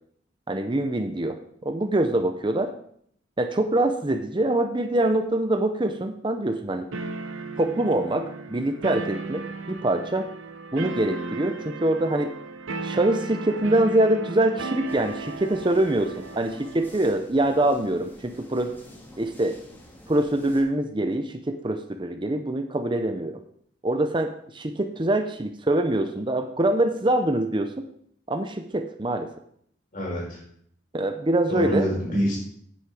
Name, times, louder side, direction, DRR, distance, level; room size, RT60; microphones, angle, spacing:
voice 1, 0.5-1.4 1.6-2.7 3.4-6.9 7.6-10.3 10.7-12.3 12.8-18.7 19.2-19.6 20.1-23.4 23.8-27.8 28.3-29.3 30.9-31.9, right 1 dB, 25° right, 6 dB, 0.6 m, -24 dB
sound 1, 6.9-17.0, right 3 dB, 85° right, 1.0 m, -35 dB
sound 2, 14.9-20.6, equal, 10° left, 1.8 m, -48 dB
voice 2, 29.9-30.4 31.5-32.4, equal, 45° left, -3 dB, 5.5 m, -26 dB
9.5 x 8.6 x 4.9 m, 0.66 s
head